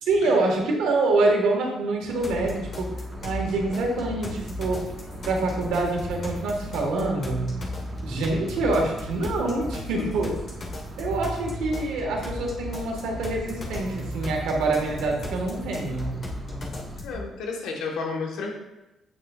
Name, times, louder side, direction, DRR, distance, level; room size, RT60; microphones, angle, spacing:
voice 1, 0.0-2.9 3.2-4.8 5.2-7.5 8.0-10.4 11.0-16.2, right 2 dB, 90° right, 0 dB, 1.6 m, -26 dB
sound 1, 2.1-17.0, right 3 dB, 35° right, 0.7 m, -41 dB
sound 2, 2.2-17.2, left 2 dB, 50° left, 1.7 m, -36 dB
voice 2, 17.0-18.5, left 4 dB, 90° left, 0 dB, 1.4 m, -31 dB
8.9 x 6.4 x 2.5 m, 0.97 s
cardioid pair, 90°, 0 cm